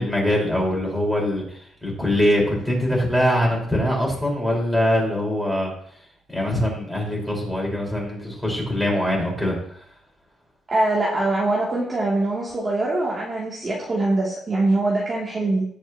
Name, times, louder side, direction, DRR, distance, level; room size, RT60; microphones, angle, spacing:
voice 1, 0.0-5.7 6.3-9.8, left 1 dB, ahead, -3 dB, 5.0 m, -23 dB
voice 2, 10.7-15.7, right 2 dB, 25° right, -6 dB, 3.0 m, -23 dB
18.5 x 6.6 x 3.1 m, 0.63 s
cardioid pair, 105°, 0 cm